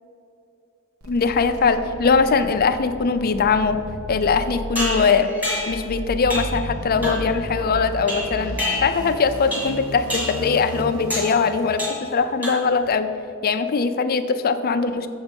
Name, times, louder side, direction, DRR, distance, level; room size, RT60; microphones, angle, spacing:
sound 1, 1.0-11.8, equal, 75° right, 1.2 m, -34 dB
voice 1, 1.1-3.8 4.1-5.3 5.7-8.6 8.8-13.1 13.4-15.1, left 5 dB, 45° left, 9 dB, 0.5 m, -21 dB
sound 2, 4.7-5.9 6.3-6.6 7.0-7.4 8.1-9.1 9.5-9.8 10.1-10.5 11.1-11.4 11.8-12.1 12.4-12.8, left 1 dB, 5° right, 2.0 m, -28 dB
7.1 x 6.4 x 5.2 m, 2.7 s
head